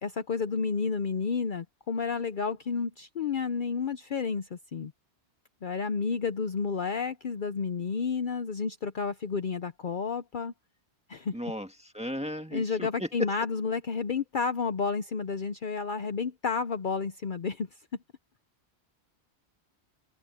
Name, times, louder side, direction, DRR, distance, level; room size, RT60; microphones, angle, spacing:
voice 1, 0.0-4.9 5.6-10.5 11.1-11.4 12.5-17.7, left 5 dB, 50° left, 0.8 m, -31 dB
voice 2, 11.3-13.1, equal, 5° right, 1.8 m, -36 dB
omnidirectional pair, 1.1 m